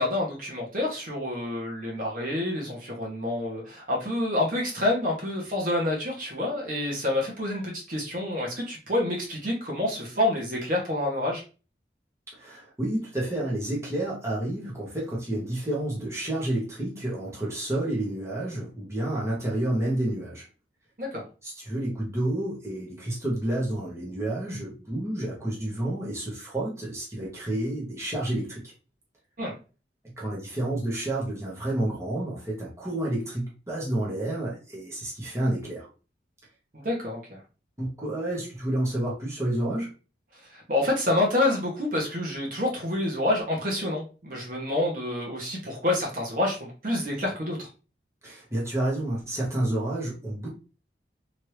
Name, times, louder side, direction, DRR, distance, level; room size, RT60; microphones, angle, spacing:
voice 1, 0.0-11.4 21.0-21.2 29.4-29.5 36.7-37.4 40.5-47.7, left 1 dB, 50° right, -2 dB, 1.0 m, -28 dB
voice 2, 12.3-20.4 21.4-28.7 30.2-35.9 37.8-39.9 48.2-50.5, right 1 dB, 15° right, -5 dB, 1.0 m, -30 dB
3.0 x 2.6 x 3.1 m, 0.34 s
head